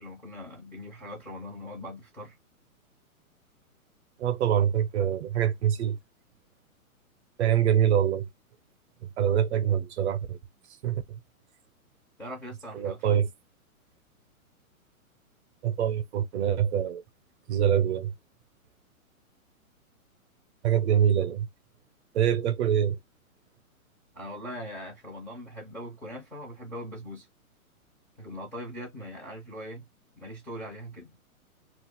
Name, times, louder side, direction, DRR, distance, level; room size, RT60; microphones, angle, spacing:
voice 1, 0.0-2.4 12.2-13.3 24.1-27.3 28.2-29.9 30.2-31.2, equal, 5° left, 0.5 m, -41 dB
voice 2, 4.2-6.0 7.4-8.3 9.2-10.4 10.8-11.2 12.7-13.3 15.6-17.0 17.5-18.1 20.6-21.5 22.1-23.0, right 9 dB, 50° right, 0.7 m, -25 dB
2.5 x 2.3 x 3.6 m
hypercardioid pair, 135°, 43 cm